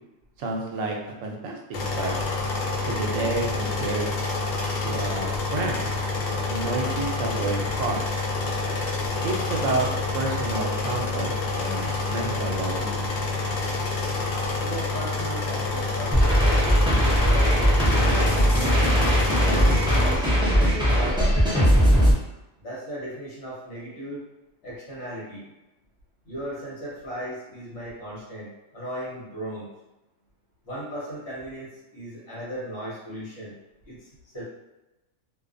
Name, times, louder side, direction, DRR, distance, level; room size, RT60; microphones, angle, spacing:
voice 1, 0.4-1.6 2.0-2.2 2.8-4.1 4.8-5.8 6.5-8.0 9.2-9.9 10.1-13.1, right 3 dB, 80° right, 0 dB, 0.9 m, -30 dB
sound 1, 1.7-20.1, left 3 dB, 85° left, 1.0 m, -28 dB
voice 2, 13.4-18.1 19.4-21.8 22.6-24.2 24.6-25.4 26.2-29.7 30.6-33.5 33.8-34.4, equal, 55° left, -8 dB, 1.1 m, -37 dB
sound 2, 16.1-22.1, equal, 5° right, 0.3 m, -19 dB
2.4 x 2.3 x 2.5 m, 0.99 s
omnidirectional pair, 1.3 m